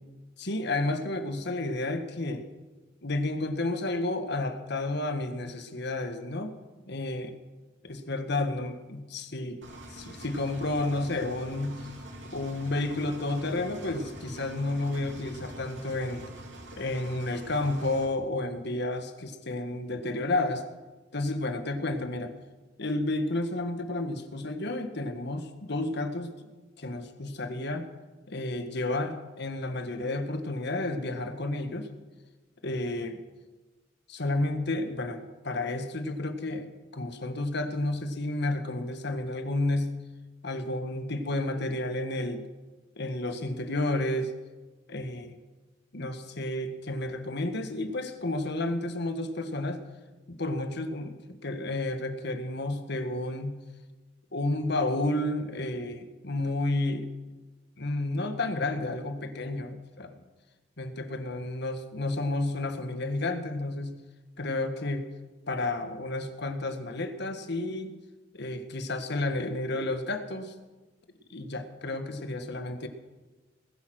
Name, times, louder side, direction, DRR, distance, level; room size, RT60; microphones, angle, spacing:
voice 1, 0.4-2.4 3.0-6.6 6.9-7.3 7.8-9.6 9.9-11.8 12.3-16.2 16.8-20.7 21.1-22.3 22.8-26.3 26.8-27.9 28.3-31.9 32.6-33.2 34.1-40.0 40.4-42.5 43.0-44.3 44.9-45.4 45.9-49.8 50.3-53.6 54.3-57.1 57.8-60.2 60.8-64.0 64.4-65.1 65.5-68.0 68.3-70.5 71.3-72.9, left 2 dB, 60° left, 7 dB, 1.5 m, -31 dB
Engine, 9.6-18.1, right 1 dB, 70° right, 2.9 m, -45 dB
20.0 x 10.5 x 6.3 m, 1.2 s
head